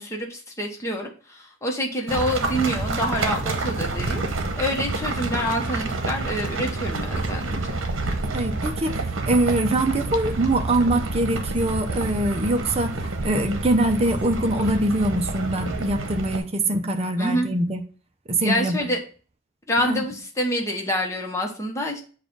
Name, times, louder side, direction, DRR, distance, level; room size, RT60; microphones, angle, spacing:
voice 1, 0.0-7.8 17.2-17.5 18.4-19.0 19.7-22.0, equal, 15° left, 1.0 m, -27 dB
sound 1, 2.1-16.4, right 2 dB, 75° right, 0.9 m, -28 dB
voice 2, 8.3-17.8 18.3-18.9 19.8-20.0, right 1 dB, 30° right, 0.6 m, -23 dB
7.3 x 2.4 x 5.3 m
head